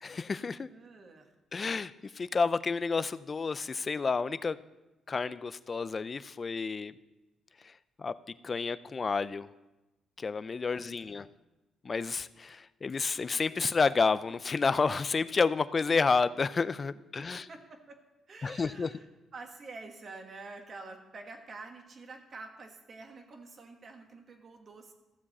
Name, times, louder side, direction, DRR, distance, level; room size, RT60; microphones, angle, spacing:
voice 1, 0.0-0.7 1.5-4.6 5.1-6.9 8.0-8.1 8.4-9.5 10.2-11.2 11.8-17.4 18.4-18.9, left 4 dB, 35° left, 16 dB, 0.4 m, -30 dB
voice 2, 0.7-1.3 10.7-11.3 17.1-18.0 18.3-19.1 19.3-24.9, right 3 dB, 45° right, 4 dB, 1.7 m, -48 dB
14.5 x 7.3 x 4.2 m, 1.0 s
cardioid pair, 90°, 0 cm